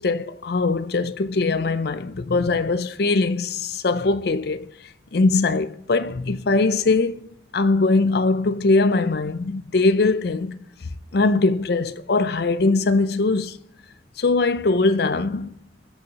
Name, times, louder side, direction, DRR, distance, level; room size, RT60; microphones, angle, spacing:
voice 1, 0.0-4.7 5.1-7.3 7.5-10.6 11.1-13.6 14.2-15.5, left 3 dB, 60° left, 0.5 m, -21 dB
20.0 x 6.8 x 2.9 m
head